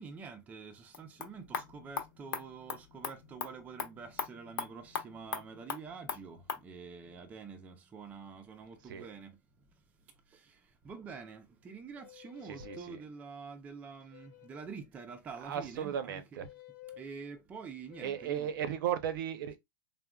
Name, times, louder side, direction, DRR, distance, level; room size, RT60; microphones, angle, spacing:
voice 1, 0.0-9.7 10.3-16.2 16.9-18.5, right 5 dB, 15° right, 0.4 m, -47 dB
sound 1, 0.8-6.7, left 6 dB, 85° left, 0.9 m, -41 dB
sound 2, 11.9-12.9 14.1-14.7 16.4-17.0 17.9-18.5, left 14 dB, 40° left, 0.9 m, -53 dB
voice 2, 12.4-13.0 15.4-16.5 18.0-19.6, right 9 dB, 65° right, 0.6 m, -36 dB
3.6 x 2.1 x 2.3 m
supercardioid pair, 150°, 12 cm